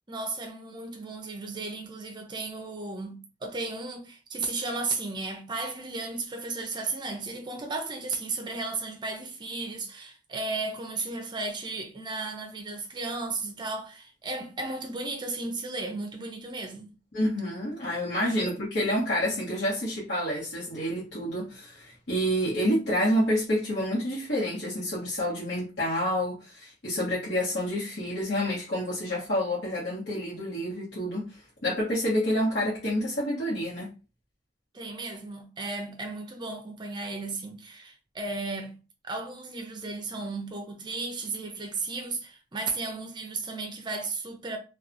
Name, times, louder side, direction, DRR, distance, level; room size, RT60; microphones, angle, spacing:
voice 1, 0.1-16.9 18.4-18.5 34.7-38.8 39.0-44.6, right 3 dB, 25° right, 0.5 m, -34 dB
voice 2, 17.1-31.3 31.6-33.9, equal, 60° left, 1.1 m, -28 dB
2.8 x 2.3 x 2.5 m
head